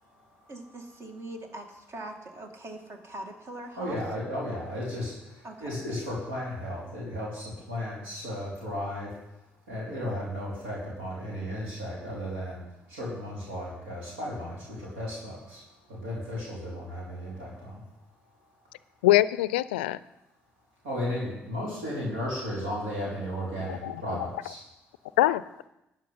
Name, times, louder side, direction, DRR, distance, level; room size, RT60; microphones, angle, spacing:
voice 1, 0.5-4.0 5.4-5.8, right 1 dB, 50° right, 4 dB, 2.3 m, -42 dB
voice 2, 3.8-5.1 5.6-9.1 9.7-12.6 12.9-15.6 15.9-17.8 20.8-24.6, left 1 dB, 80° right, -5 dB, 4.1 m, -34 dB
voice 3, 19.0-20.0 23.6-24.0 25.2-25.6, left 16 dB, 80° left, 18 dB, 0.4 m, -23 dB
13.0 x 9.1 x 5.5 m, 0.90 s
hypercardioid pair, 45°, 6 cm